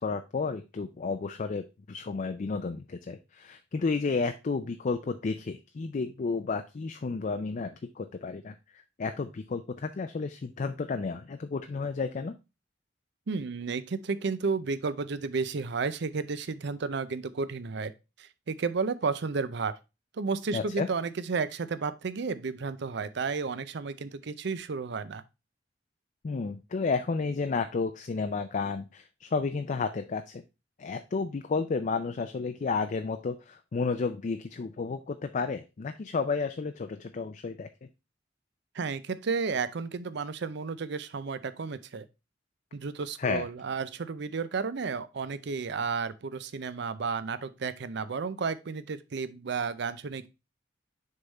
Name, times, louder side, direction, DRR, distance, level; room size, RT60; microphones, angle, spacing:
voice 1, 0.0-12.4 20.5-20.9 26.2-30.4 30.8-37.9 43.2-43.5, left 4 dB, 45° left, 0.4 m, -32 dB
voice 2, 13.3-17.9 18.2-19.7 20.1-25.2 38.7-42.1 42.7-50.3, right 4 dB, 65° right, 0.5 m, -32 dB
6.6 x 3.6 x 4.0 m
head